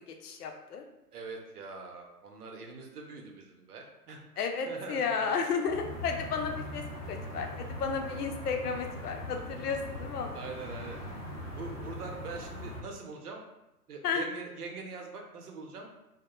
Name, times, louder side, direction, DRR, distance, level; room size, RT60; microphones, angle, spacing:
voice 1, 0.2-0.8 4.4-10.4 14.0-14.2, left 5 dB, 75° left, 4 dB, 0.6 m, -33 dB
voice 2, 1.1-5.6 10.3-11.0 11.5-13.4 13.9-15.9, right 4 dB, 70° right, 2 dB, 0.7 m, -43 dB
sound 1, 5.6-12.8, left 1 dB, 25° left, 0.6 m, -41 dB
2.2 x 2.1 x 2.8 m, 0.91 s
hypercardioid pair, 145°, 47 cm